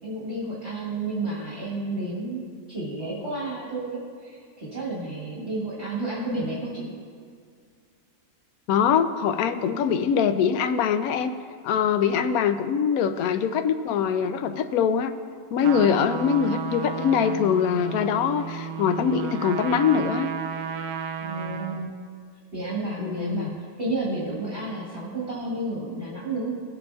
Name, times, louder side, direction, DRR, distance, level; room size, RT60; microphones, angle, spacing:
voice 1, 0.0-2.4 2.7-6.8 21.2-21.9 22.5-26.5, right 2 dB, 40° right, -7 dB, 2.1 m, -31 dB
voice 2, 8.7-11.3 11.6-15.1 15.5-20.3 23.0-23.5, left 7 dB, 70° left, 9 dB, 1.0 m, -23 dB
Trumpet, 15.6-21.9, right 7 dB, 90° right, 1.3 m, -33 dB
19.0 x 7.5 x 2.4 m, 2.1 s
omnidirectional pair, 1.7 m